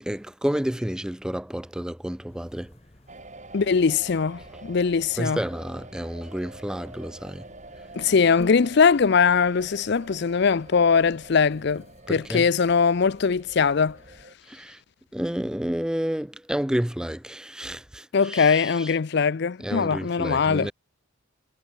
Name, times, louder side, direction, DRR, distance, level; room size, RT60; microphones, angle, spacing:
voice 1, 0.0-2.7 5.2-7.5 12.1-12.4 14.5-14.8 15.1-18.9 19.6-20.7, equal, 5° right, 0.3 m, -30 dB
sound 1, 2.3-14.3, left 1 dB, 30° left, 1.4 m, -51 dB
sound 2, 3.1-14.4, right 2 dB, 35° right, 4.7 m, -47 dB
voice 2, 3.5-5.4 7.9-14.0 18.1-20.7, left 5 dB, 55° left, 0.5 m, -21 dB
head